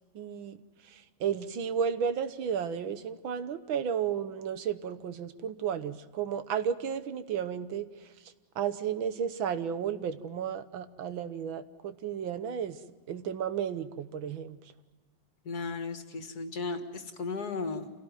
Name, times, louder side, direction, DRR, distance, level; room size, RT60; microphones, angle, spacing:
voice 1, 0.2-0.6 0.9-8.1 8.6-12.8 13.1-14.6, right 8 dB, 80° right, 12 dB, 1.9 m, -33 dB
voice 2, 15.4-17.9, left 4 dB, 50° left, 8 dB, 2.1 m, -35 dB
27.0 x 17.0 x 9.1 m, 1.3 s
omnidirectional pair, 2.1 m